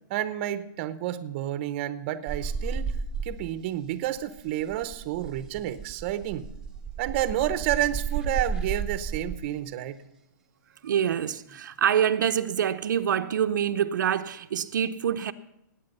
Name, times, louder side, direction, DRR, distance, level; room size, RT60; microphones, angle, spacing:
voice 1, 0.1-2.9 3.2-6.5 7.0-10.0, right 12 dB, 35° right, 0.7 m, -30 dB
sound 1, 2.3-3.7 4.0-9.4 11.1-11.6, right 5 dB, 5° right, 0.9 m, -33 dB
voice 2, 10.8-15.3, right 9 dB, 70° right, 0.6 m, -26 dB
19.0 x 8.6 x 5.5 m
hypercardioid pair, 165°, 10 cm